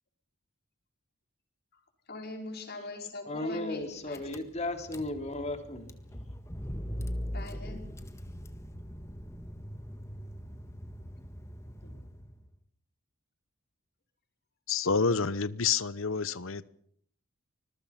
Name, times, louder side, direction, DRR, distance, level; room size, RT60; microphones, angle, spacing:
voice 1, 2.1-4.4 7.3-7.9 11.8-11.9, left 3 dB, 50° left, 5.5 m, -42 dB
voice 2, 3.2-5.9, left 2 dB, 30° left, 3.1 m, -35 dB
Car / Engine, 3.8-3.9 4.1-12.5, equal, 15° left, 1.7 m, -41 dB
voice 3, 14.7-16.8, left 5 dB, 65° left, 1.0 m, -28 dB
25.5 x 21.5 x 5.9 m
head